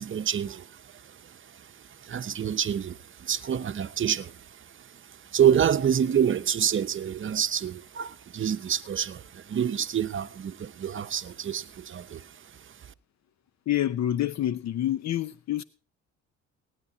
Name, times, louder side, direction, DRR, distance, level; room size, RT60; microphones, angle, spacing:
voice 1, 0.0-12.9, right 9 dB, 40° right, 0.8 m, -28 dB
voice 2, 13.7-15.6, left 12 dB, 60° left, 0.7 m, -27 dB
24.0 x 10.0 x 2.8 m
cardioid pair, 90°, 30 cm